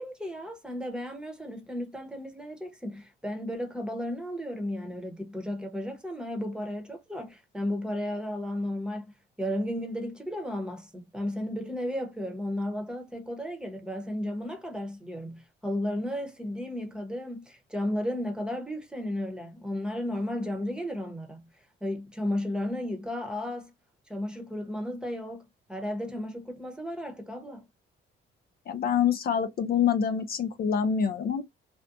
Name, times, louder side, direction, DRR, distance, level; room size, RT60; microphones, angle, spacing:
voice 1, 0.0-9.1 9.4-21.5 21.8-23.7 24.1-25.4 25.7-27.6, left 1 dB, 5° right, 0.9 m, -34 dB
voice 2, 28.7-31.4, left 7 dB, 50° left, 0.4 m, -26 dB
2.5 x 2.2 x 2.5 m
cardioid pair, 90°, 20 cm